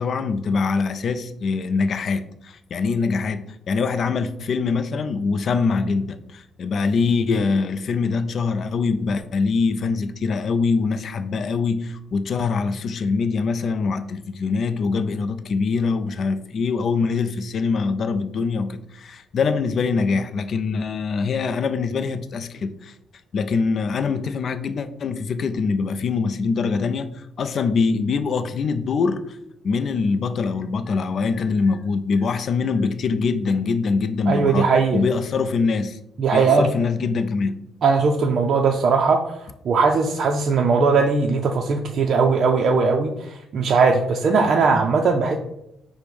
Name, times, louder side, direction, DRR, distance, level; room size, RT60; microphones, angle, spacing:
voice 1, 0.0-22.9 23.3-29.4 29.6-36.0 36.3-37.6, left 4 dB, 55° left, 11 dB, 0.3 m, -23 dB
voice 2, 34.3-35.0 36.2-36.7 37.8-39.4 39.6-45.4, right 4 dB, 55° right, 2 dB, 0.4 m, -19 dB
5.1 x 2.1 x 4.6 m, 0.81 s
cardioid pair, 90°, 0 cm